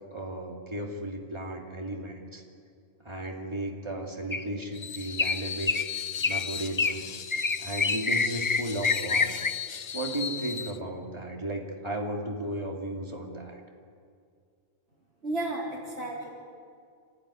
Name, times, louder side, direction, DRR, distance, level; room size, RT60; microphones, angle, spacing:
voice 1, 0.1-2.4 3.0-5.7 6.2-7.0 7.6-9.3 9.9-13.6, right 1 dB, 25° right, 0 dB, 2.6 m, -35 dB
sound 1, 4.3-4.6 5.2-5.4 5.7-5.9 6.2-6.5 6.8-7.0 7.3-9.5, left 4 dB, 25° left, 0.5 m, -26 dB
Screech, 4.7-10.8, left 7 dB, 65° left, 1.0 m, -37 dB
voice 2, 15.2-16.3, right 2 dB, 90° right, -8 dB, 4.1 m, -32 dB
26.5 x 16.0 x 9.8 m, 2.2 s
omnidirectional pair, 1.1 m